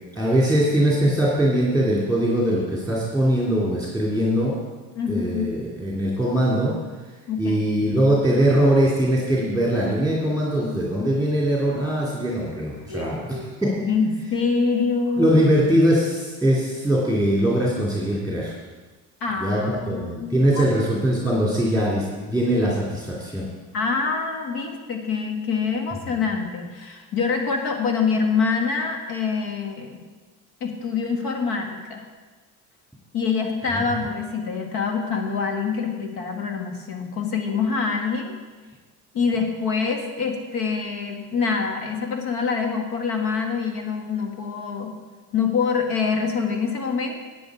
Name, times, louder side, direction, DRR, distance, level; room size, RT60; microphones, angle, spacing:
voice 1, 0.1-4.5 5.1-6.8 7.4-13.8 15.2-18.5 19.4-23.4 26.1-26.2, right 1 dB, 5° left, -6 dB, 2.6 m, -21 dB
voice 2, 5.0-5.5 7.3-7.7 12.9-13.4 13.9-15.3 19.2-20.7 23.7-30.0 30.6-32.1 33.1-38.3 39.1-44.9 45.3-47.1, left 5 dB, 65° left, 3 dB, 2.0 m, -25 dB
10.5 x 8.8 x 4.9 m, 1.3 s
cardioid pair, 105°, 38 cm